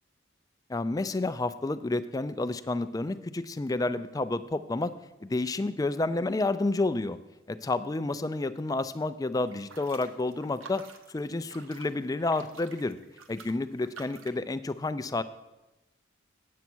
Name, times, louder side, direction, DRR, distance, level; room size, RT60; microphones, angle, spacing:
voice 1, 0.7-4.9 5.2-7.2 7.5-10.8 11.1-13.0 13.3-15.2, left 2 dB, 20° left, 13 dB, 0.3 m, -30 dB
sound 1, 9.4-14.4, right 4 dB, 90° right, 1.0 m, -50 dB
8.4 x 7.9 x 6.1 m, 1.0 s
head